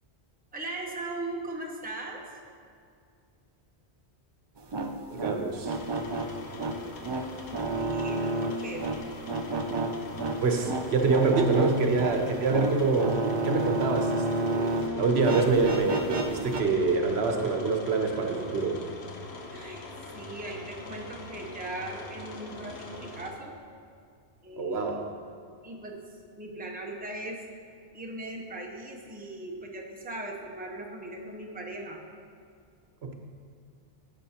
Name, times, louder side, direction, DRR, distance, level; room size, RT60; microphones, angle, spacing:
voice 1, 0.5-2.3 7.5-8.8 19.5-19.8 20.1-23.6 24.4-25.1 25.6-26.0 26.4-27.4 27.9-32.0, right 2 dB, 10° right, 0 dB, 0.7 m, -39 dB
sound 1, 4.6-14.9 15.2-16.6, right 2 dB, 45° right, 0.3 m, -31 dB
voice 2, 5.1-5.8 10.4-18.8 24.6-25.0 33.0-33.1, right 4 dB, 80° right, 3 dB, 1.1 m, -26 dB
sound 2, 5.6-23.3, left 3 dB, 85° left, 1.1 m, -43 dB
11.5 x 7.5 x 2.9 m, 2.3 s
omnidirectional pair, 1.1 m